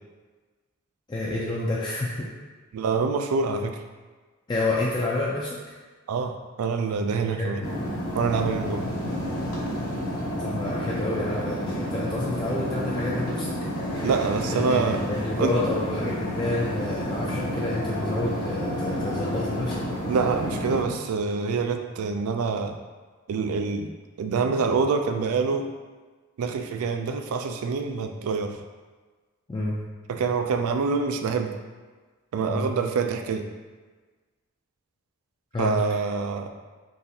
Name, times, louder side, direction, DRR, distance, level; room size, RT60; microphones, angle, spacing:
voice 1, 1.1-2.3 4.5-5.6 7.3-7.8 10.4-13.5 14.5-19.8 29.5-29.8 32.5-32.7 35.5-35.8, left 2 dB, 20° left, -6 dB, 0.3 m, -29 dB
voice 2, 2.7-3.8 6.1-7.6 8.1-8.9 14.0-15.0 15.4-15.5 20.1-22.8 23.3-23.9 24.2-25.7 26.4-28.6 30.1-31.5 32.3-33.5 35.6-36.5, right 5 dB, 80° right, 6 dB, 0.3 m, -26 dB
sound 1, 7.6-20.8, equal, 65° left, 0.8 m, -30 dB
3.9 x 2.4 x 2.7 m, 1.4 s
head